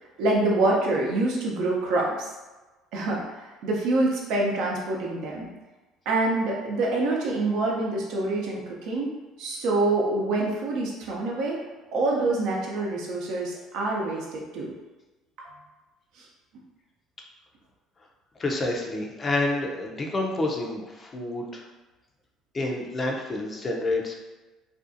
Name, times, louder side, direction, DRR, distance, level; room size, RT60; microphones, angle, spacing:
voice 1, 0.2-2.3 2.9-5.5 6.1-9.1 9.4-11.6 11.9-14.7 15.4-15.5 16.2-16.3, right 2 dB, 70° right, -2 dB, 0.6 m, -26 dB
voice 2, 18.4-21.6 22.5-24.2, left 2 dB, 35° left, 0 dB, 0.5 m, -28 dB
2.5 x 2.3 x 2.6 m, 1.2 s
hypercardioid pair, 70°, 0 cm